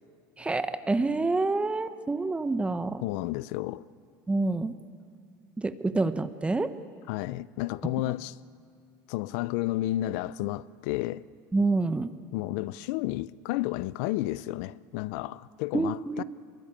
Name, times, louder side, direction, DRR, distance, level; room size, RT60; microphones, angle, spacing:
voice 1, 0.4-3.0 4.3-4.7 5.6-6.7 8.1-8.2 11.5-12.1 15.7-16.2, right 3 dB, 10° right, 1.0 m, -27 dB
voice 2, 3.0-3.8 7.1-8.3 9.1-11.2 12.3-16.2, left 16 dB, 80° left, 0.6 m, -31 dB
24.5 x 21.5 x 8.8 m
supercardioid pair, 120°, 9 cm